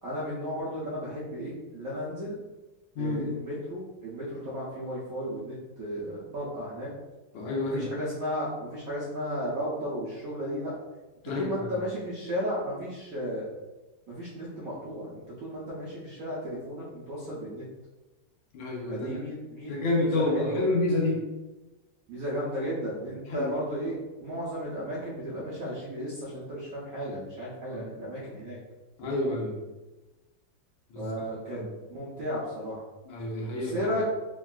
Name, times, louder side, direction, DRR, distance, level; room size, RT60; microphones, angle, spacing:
voice 1, 0.0-2.4 3.0-6.9 7.7-10.7 11.4-13.5 14.1-17.6 18.9-20.6 22.1-28.6 29.1-29.3 31.0-31.6 31.9-32.8 33.6-34.0, equal, 70° right, -8 dB, 0.8 m, -34 dB
voice 2, 3.0-3.3 7.3-7.8 11.2-11.7 18.5-19.2 19.7-21.2 23.3-23.5 27.7-27.8 29.0-29.5 30.9-31.1 31.5-31.6 33.1-33.9, left 2 dB, 80° left, -2 dB, 1.4 m, -29 dB
3.6 x 2.3 x 2.3 m, 1.1 s
omnidirectional pair, 2.1 m